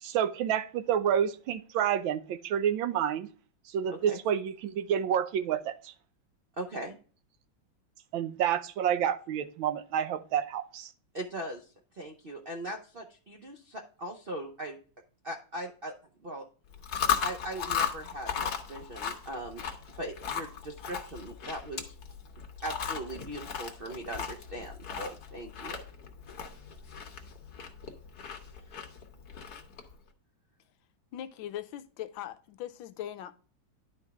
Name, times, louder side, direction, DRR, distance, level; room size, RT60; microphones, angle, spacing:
voice 1, 0.0-3.3 3.7-5.9 8.1-10.9, right 9 dB, 75° right, 1.4 m, -29 dB
voice 2, 3.9-4.2 6.6-7.0 11.1-14.8 15.2-15.9 16.2-16.4 17.2-19.6 20.0-21.9 22.6-25.8 28.7-28.8, right 1 dB, 55° right, 0.6 m, -40 dB
Chewing mastication, 16.7-29.9, left 8 dB, 55° left, 1.5 m, -36 dB
voice 3, 31.1-33.4, left 11 dB, 75° left, 1.3 m, -40 dB
11.0 x 4.5 x 3.5 m
omnidirectional pair, 2.2 m